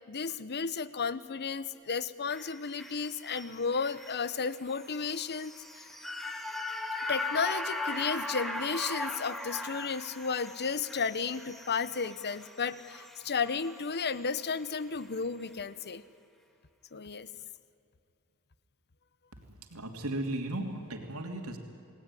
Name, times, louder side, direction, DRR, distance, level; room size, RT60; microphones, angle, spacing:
voice 1, 0.1-5.9 7.1-16.0 16.9-17.3, left 5 dB, 50° left, 15 dB, 1.0 m, -33 dB
sound 1, 2.3-14.6 15.0-15.1, left 2 dB, ahead, 1.8 m, -39 dB
voice 2, 19.7-21.6, right 1 dB, 70° right, 3 dB, 3.1 m, -35 dB
29.5 x 19.0 x 10.0 m, 2.6 s
head